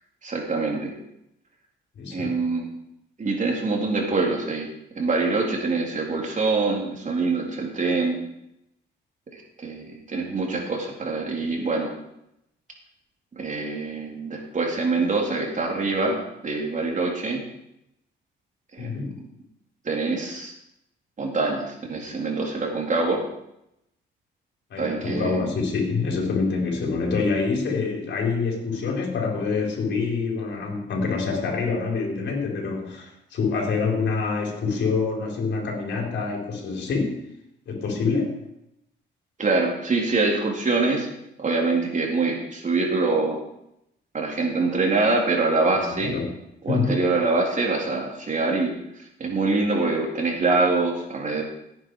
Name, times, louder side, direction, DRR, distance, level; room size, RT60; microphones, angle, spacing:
voice 1, 0.2-0.9 2.1-2.7 3.2-4.7 5.0-8.2 9.3-11.9 13.4-17.4 18.7-19.1 19.8-20.5 21.2-23.2 24.8-25.5 39.4-41.1 41.4-43.4 44.1-46.2 46.6-51.4, right 3 dB, 40° right, 0 dB, 3.8 m, -25 dB
voice 2, 2.0-2.4 18.8-19.2 24.7-37.2 37.7-38.4 45.8-46.3 46.7-47.0, left 4 dB, 65° left, 0 dB, 4.9 m, -26 dB
17.0 x 9.7 x 5.0 m, 0.82 s
cardioid pair, 90°, 20 cm